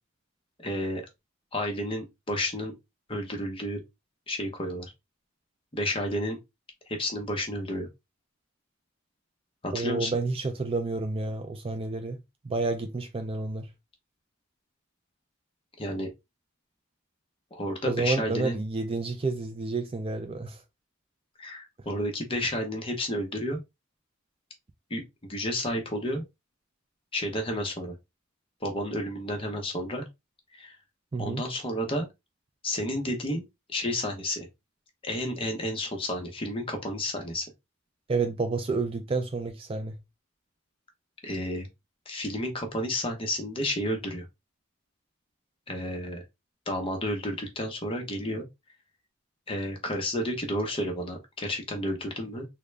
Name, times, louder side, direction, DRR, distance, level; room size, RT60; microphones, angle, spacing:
voice 1, 0.6-1.0 1.5-2.7 3.1-3.8 4.3-4.9 5.7-6.4 6.9-7.9 9.6-10.1 15.8-16.1 17.5-18.6 21.4-23.6 24.9-25.0 25.3-26.2 27.1-27.9 28.6-30.0 30.5-30.8 31.2-32.1 32.6-33.4 33.7-34.5 35.0-37.5 41.2-41.7 42.1-44.3 45.7-46.2 46.7-48.4 49.5-52.5, left 1 dB, 25° left, 0.9 m, -31 dB
voice 2, 9.7-13.7 17.9-20.6 31.1-31.4 38.1-40.0, right 3 dB, 25° right, 0.4 m, -30 dB
3.7 x 2.2 x 3.3 m
head